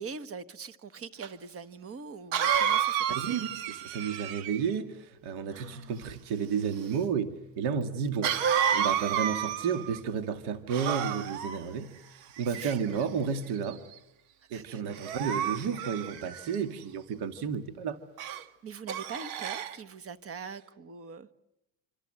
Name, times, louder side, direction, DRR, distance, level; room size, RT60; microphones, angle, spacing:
voice 1, 0.0-3.4 5.5-6.0 12.5-13.1 14.5-14.8 18.6-21.3, right 5 dB, 30° right, 1.2 m, -43 dB
Cough, 1.2-1.3 2.3-4.7 8.2-10.0 10.7-11.6 12.4-13.0 13.6-13.9 14.9-16.6 18.2-18.4 18.9-19.8, right 9 dB, 85° right, 2.0 m, -30 dB
voice 2, 3.2-8.3 8.7-13.8 14.5-18.0, right 6 dB, 55° right, 2.1 m, -32 dB
27.0 x 26.5 x 7.7 m
cardioid pair, 150°, 47 cm